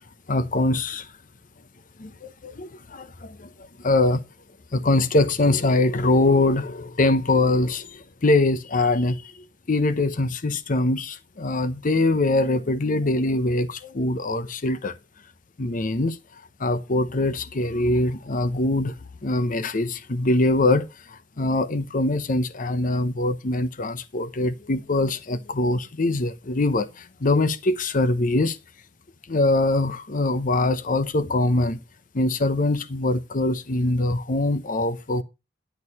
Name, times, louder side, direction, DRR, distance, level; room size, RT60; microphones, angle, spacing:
voice 1, 0.3-1.1 2.0-3.5 3.8-4.2 4.7-9.3 9.7-14.9 15.6-16.2 16.6-18.9 19.2-28.6 29.3-31.8 32.1-35.2, left 2 dB, 50° left, 0.8 m, -23 dB
10.5 x 6.4 x 5.4 m
head